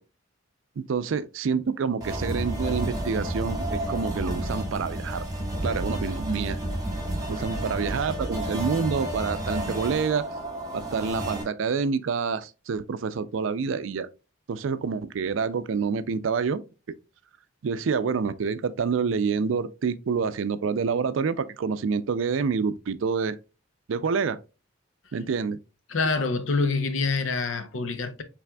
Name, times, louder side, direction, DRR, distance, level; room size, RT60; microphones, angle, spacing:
voice 1, 0.8-5.2 5.6-6.6 7.3-10.3 10.7-14.1 14.5-16.6 17.6-23.4 23.9-24.4 25.1-25.6, right 5 dB, 80° right, 0.4 m, -27 dB
sound 1, 2.0-11.4, right 1 dB, 20° right, 1.4 m, -31 dB
voice 2, 25.9-28.2, left 4 dB, 85° left, 0.7 m, -26 dB
5.8 x 3.4 x 2.2 m
head